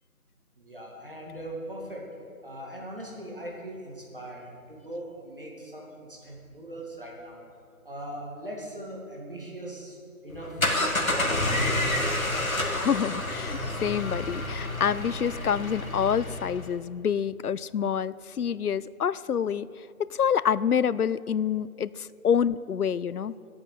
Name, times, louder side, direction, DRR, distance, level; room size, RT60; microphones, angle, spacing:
voice 1, 0.6-2.0 2.4-7.4 7.8-10.0 10.2-10.6 11.1-11.9, right 1 dB, 35° right, -2 dB, 2.3 m, -40 dB
sound 1, 10.3-16.7, left 1 dB, 65° left, 1.8 m, -29 dB
voice 2, 12.7-19.7 20.0-23.3, left 8 dB, 80° left, 18 dB, 0.6 m, -27 dB
11.5 x 8.8 x 7.4 m, 2.3 s
figure-of-eight pair, 180°, 44 cm